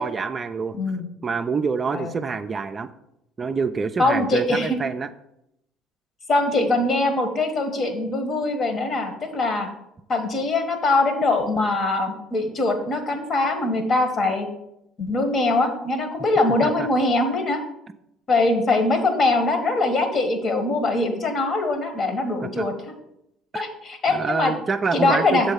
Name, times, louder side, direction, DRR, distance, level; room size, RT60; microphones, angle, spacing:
voice 1, 0.0-0.8 1.2-2.9 3.4-5.1 16.6-16.9 22.4-22.7 23.5-23.6 24.1-25.5, right 5 dB, 35° right, 8 dB, 0.4 m, -26 dB
voice 2, 0.7-1.1 1.9-2.1 4.0-4.8 6.3-9.7 10.1-14.5 15.0-17.6 18.3-22.7 23.5-24.5 24.9-25.5, left 2 dB, 45° left, 7 dB, 1.3 m, -22 dB
7.0 x 3.7 x 5.5 m, 0.83 s
hypercardioid pair, 60°, 0 cm